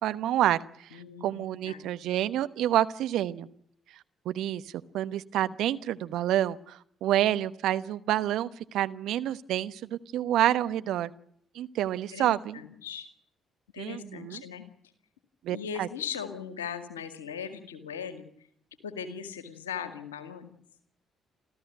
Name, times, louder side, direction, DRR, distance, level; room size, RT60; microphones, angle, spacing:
voice 1, 0.0-3.5 4.2-11.1 11.5-12.6 13.8-14.4 15.4-15.9, right 12 dB, 65° right, 12 dB, 1.1 m, -28 dB
voice 2, 0.9-1.9 12.1-13.1 13.7-14.7 15.5-18.2 18.8-20.5, left 7 dB, 85° left, 9 dB, 2.0 m, -39 dB
29.5 x 14.0 x 9.3 m, 0.68 s
hypercardioid pair, 45°, 0 cm